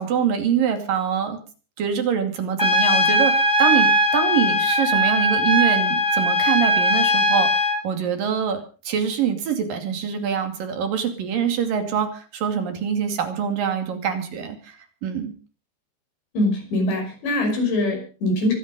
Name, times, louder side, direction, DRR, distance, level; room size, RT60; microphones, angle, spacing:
voice 1, 0.0-1.4 1.8-14.8 15.0-15.3, right 7 dB, 55° right, 6 dB, 3.9 m, -24 dB
Trumpet, 2.6-7.8, equal, 10° left, 0.9 m, -19 dB
voice 2, 16.3-18.5, left 1 dB, 75° left, 3 dB, 8.0 m, -23 dB
24.5 x 9.4 x 5.4 m, 0.38 s
omnidirectional pair, 5.1 m